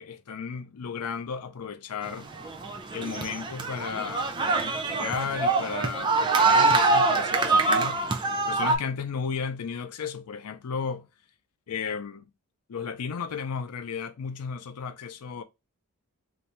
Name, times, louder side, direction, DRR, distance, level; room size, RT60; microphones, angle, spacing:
voice 1, 0.0-2.3 2.9-4.3 4.6-8.0 8.5-11.1 11.7-12.3 12.7-15.4, left 6 dB, 90° left, 0.5 m, -34 dB
sound 1, 2.1-8.8, right 3 dB, 20° right, 0.4 m, -24 dB
2.6 x 2.2 x 4.1 m
head